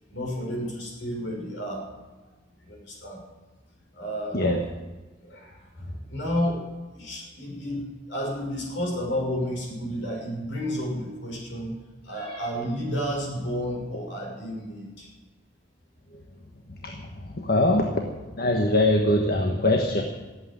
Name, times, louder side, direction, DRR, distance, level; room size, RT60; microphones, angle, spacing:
voice 1, 0.1-1.9 2.6-3.2 4.0-4.5 5.2-11.7 12.0-15.1, equal, 75° left, 0 dB, 6.2 m, -31 dB
voice 2, 17.4-20.0, left 1 dB, 55° left, 2 dB, 1.4 m, -23 dB
15.5 x 8.5 x 9.9 m, 1.2 s
head